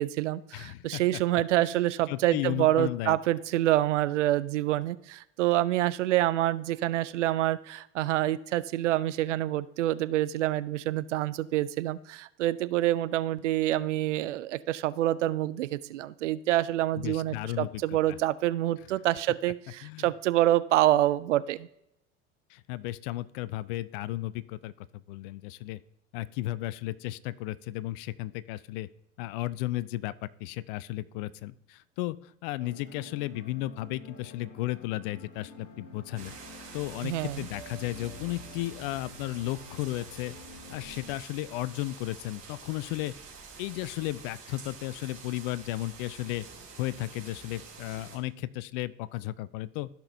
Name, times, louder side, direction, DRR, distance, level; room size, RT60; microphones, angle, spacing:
voice 1, 0.0-21.7 37.0-37.5, right 14 dB, 70° right, 17 dB, 0.5 m, -27 dB
voice 2, 0.5-1.2 1.6-1.7 2.1-3.2 17.0-18.2 19.8-20.1 22.5-25.8 26.1-28.9 29.2-36.3 36.7-43.1 43.6-46.5 46.8-49.9, left 16 dB, 45° left, 18 dB, 0.4 m, -34 dB
sound 1, 32.6-41.2, left 2 dB, 65° left, 1.7 m, -49 dB
sound 2, 36.1-48.2, right 4 dB, 45° right, 3.4 m, -48 dB
14.0 x 5.9 x 2.7 m, 0.80 s
figure-of-eight pair, 70°, 38 cm